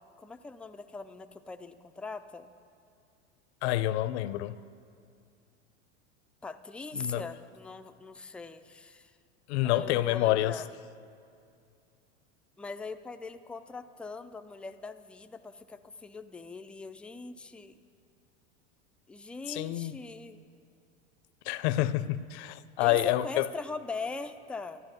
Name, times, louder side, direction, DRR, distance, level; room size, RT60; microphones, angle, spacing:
voice 1, 0.2-2.5 6.4-9.2 9.6-10.7 12.6-17.8 19.1-20.4 22.8-24.8, left 3 dB, 5° left, 0.3 m, -41 dB
voice 2, 3.6-4.6 6.9-7.2 9.5-10.6 19.5-20.0 21.5-23.5, left 14 dB, 65° left, 0.7 m, -28 dB
12.5 x 11.5 x 6.9 m
hypercardioid pair, 105°, 36 cm